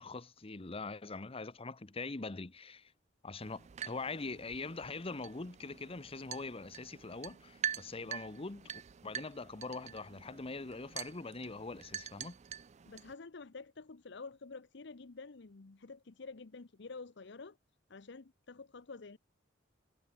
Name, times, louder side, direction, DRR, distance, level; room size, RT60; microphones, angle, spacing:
voice 1, 0.0-2.9 3.2-12.4, left 3 dB, 30° left, 0.9 m, -43 dB
sound 1, 3.4-13.1, right 9 dB, 35° right, 0.4 m, -45 dB
voice 2, 12.9-17.6 17.9-19.2, left 4 dB, 65° left, 0.8 m, -49 dB
head